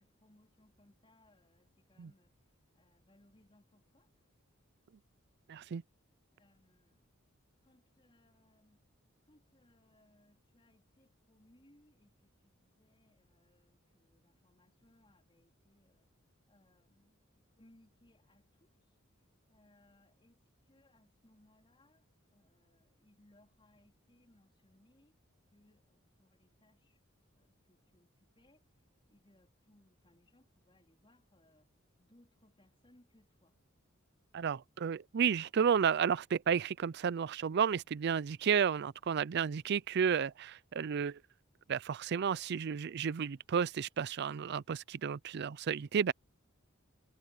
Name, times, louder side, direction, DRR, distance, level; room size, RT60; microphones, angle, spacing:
voice 1, 0.0-4.5 6.3-7.2 7.6-8.9 9.2-25.2 25.5-27.0 27.3-31.7 32.0-33.6, left 1 dB, 25° left, 3.9 m, -69 dB
voice 2, 5.5-5.8 34.3-41.2 41.7-46.1, right 7 dB, 55° right, 0.4 m, -32 dB
head